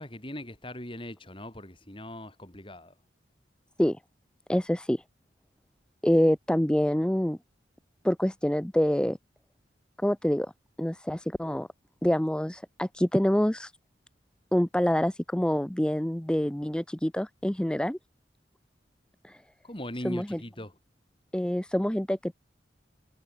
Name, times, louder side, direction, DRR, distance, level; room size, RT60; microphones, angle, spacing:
voice 1, 0.0-2.9 19.6-20.7, left 1 dB, 30° left, 6.5 m, -40 dB
voice 2, 4.5-5.0 6.0-7.4 8.0-9.2 10.0-10.5 10.8-11.7 12.0-13.7 14.5-18.0 19.2-19.4 20.0-20.4 21.3-22.3, equal, 5° left, 0.5 m, -26 dB
head